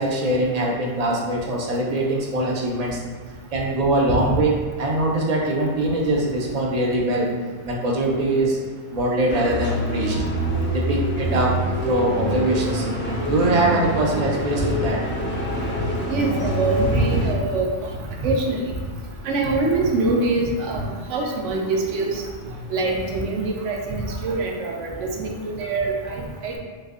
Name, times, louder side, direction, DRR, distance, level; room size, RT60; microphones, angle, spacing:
voice 1, 0.0-3.0 3.5-7.3 7.6-8.6 8.9-10.2 10.7-11.6 11.8-12.9 13.2-15.0, right 1 dB, 55° right, -2 dB, 0.4 m, -22 dB
sound 1, 9.3-17.3, equal, 15° left, 0.4 m, -25 dB
voice 2, 16.1-17.7 18.2-18.6 19.2-22.2 22.7-26.6, right 2 dB, 75° right, 0 dB, 0.9 m, -24 dB
3.9 x 2.6 x 2.4 m, 1.5 s
omnidirectional pair, 1.3 m